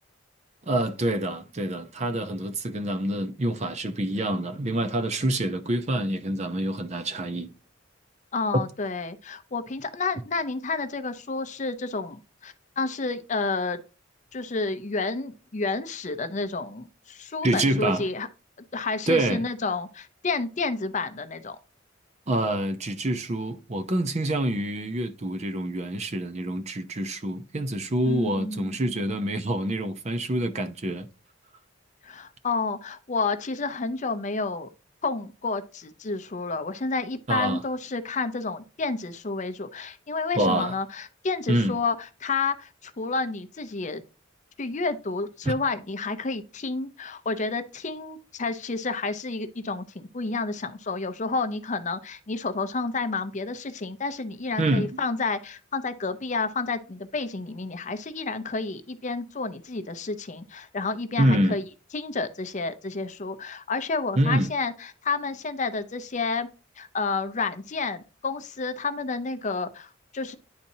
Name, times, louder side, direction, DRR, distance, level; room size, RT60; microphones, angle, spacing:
voice 1, 0.7-7.5 17.4-18.1 19.1-19.4 22.3-31.1 37.3-37.6 40.4-40.7 41.5-41.7 45.4-45.5 54.6-55.0 61.2-61.6 64.2-64.5, right 1 dB, 35° right, 0.6 m, -26 dB
voice 2, 8.3-13.8 14.3-18.3 18.7-21.6 28.0-28.8 32.0-34.7 35.0-44.0 44.6-61.6 61.9-66.5 66.8-70.3, left 3 dB, 35° left, 0.6 m, -30 dB
10.5 x 4.2 x 2.7 m
head